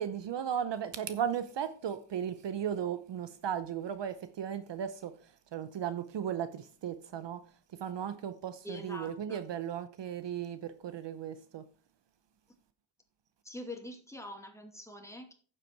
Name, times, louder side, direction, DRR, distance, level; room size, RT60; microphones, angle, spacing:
voice 1, 0.0-7.4 7.8-11.6, right 9 dB, 60° right, 0.8 m, -36 dB
voice 2, 8.6-9.4 13.4-15.3, left 1 dB, 5° left, 2.4 m, -44 dB
9.3 x 7.7 x 4.6 m
cardioid pair, 90°, 48 cm